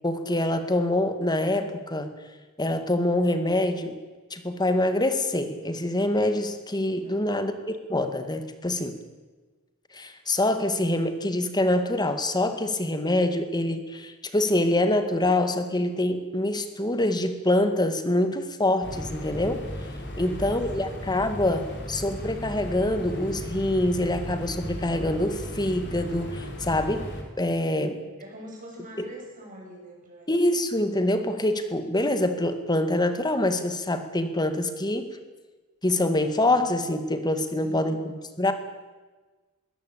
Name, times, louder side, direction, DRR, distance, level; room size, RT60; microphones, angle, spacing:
voice 1, 0.0-2.1 2.6-4.0 4.3-7.5 7.9-9.0 9.9-19.7 20.2-27.1 27.4-28.0 30.3-35.2 35.8-38.5, left 1 dB, 20° left, 9 dB, 2.0 m, -25 dB
voice 2, 7.0-7.5 20.1-20.9 27.8-30.3 37.5-38.0, equal, 40° right, -1 dB, 7.5 m, -45 dB
sound 1, 18.8-27.2, equal, 55° left, 4.1 m, -36 dB
21.5 x 17.5 x 8.7 m, 1.3 s
head